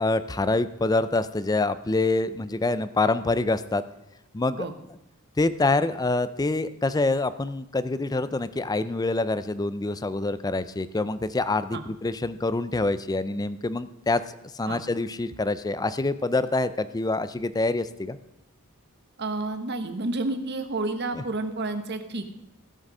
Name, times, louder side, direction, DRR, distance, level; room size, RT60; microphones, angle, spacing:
voice 1, 0.0-3.8 4.3-4.7 5.4-14.2 14.5-18.2 21.1-21.2, left 2 dB, 15° left, 14 dB, 0.4 m, -26 dB
voice 2, 19.2-22.3, right 2 dB, 50° right, 8 dB, 1.1 m, -30 dB
16.0 x 6.4 x 5.4 m, 0.87 s
head